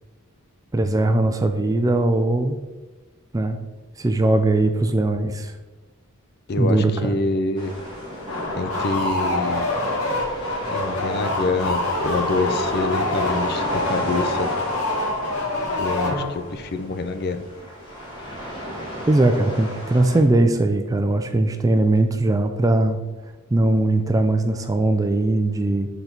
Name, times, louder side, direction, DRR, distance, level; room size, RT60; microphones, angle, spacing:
voice 1, 0.7-2.6 3.3-3.6 4.0-5.5 6.6-7.1 19.1-23.0 23.5-25.9, right 2 dB, 15° right, 7 dB, 0.3 m, -20 dB
voice 2, 6.5-7.7 8.6-9.7 10.7-14.5 15.8-17.4, left 3 dB, 45° left, 9 dB, 0.5 m, -26 dB
sound 1, 7.6-20.2, equal, 20° left, 1.7 m, -35 dB
sound 2, 8.3-16.6, left 2 dB, 70° left, 1.4 m, -25 dB
6.9 x 4.0 x 4.4 m, 1.2 s
head